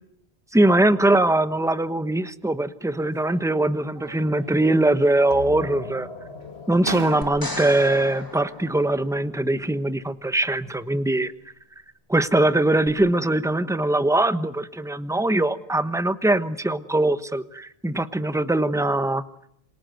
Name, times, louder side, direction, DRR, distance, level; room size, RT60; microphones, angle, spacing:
voice 1, 0.5-6.1 6.7-11.3 12.1-19.2, right 2 dB, 5° right, 12 dB, 1.1 m, -22 dB
sound 1, 3.0-3.6 3.9-4.7 5.0-5.8 6.4-6.5 6.8-7.8, right 3 dB, 60° right, 1.8 m, -38 dB
sound 2, 5.3-10.6, left 3 dB, 90° left, 2.1 m, -41 dB
sound 3, 7.2-9.5 12.9-13.0, left 1 dB, 20° left, 2.8 m, -36 dB
27.0 x 27.0 x 8.0 m, 0.72 s
omnidirectional pair, 1.0 m